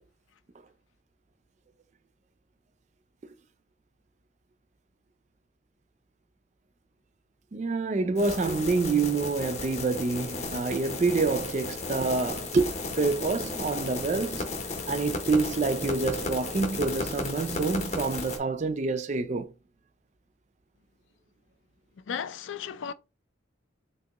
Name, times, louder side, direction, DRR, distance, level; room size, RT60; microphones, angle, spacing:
voice 1, 7.5-14.5 14.9-19.5, right 3 dB, 35° right, 0.3 m, -27 dB
sound 1, 8.2-18.4, left 3 dB, 35° left, 0.7 m, -34 dB
voice 2, 22.1-22.9, left 7 dB, 70° left, 0.4 m, -34 dB
3.5 x 2.8 x 2.9 m
head